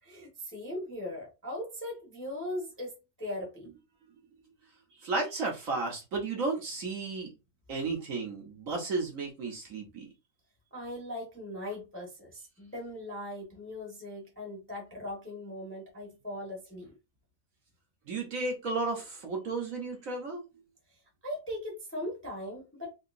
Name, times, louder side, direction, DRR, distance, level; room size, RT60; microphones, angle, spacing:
voice 1, 0.0-3.7 10.7-16.9 21.2-22.9, left 1 dB, 10° left, 0.8 m, -39 dB
voice 2, 4.9-7.3 7.7-10.1 18.1-20.4, right 3 dB, 60° right, 1.1 m, -33 dB
3.6 x 2.8 x 2.5 m
omnidirectional pair, 1.8 m